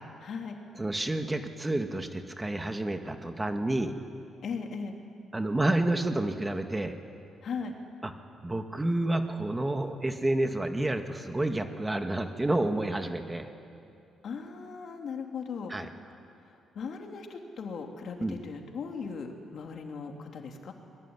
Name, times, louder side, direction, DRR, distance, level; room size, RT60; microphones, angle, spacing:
voice 1, 0.2-0.5 4.4-5.0 7.4-7.7 14.2-15.7 16.4-20.7, left 5 dB, 60° left, 3 dB, 3.3 m, -38 dB
voice 2, 0.8-3.9 5.3-6.9 8.0-8.1 8.4-13.5 15.7-15.9 18.2-18.3, right 1 dB, 15° right, 6 dB, 1.9 m, -29 dB
25.5 x 21.5 x 9.9 m, 2.6 s
cardioid pair, 90°, 0 cm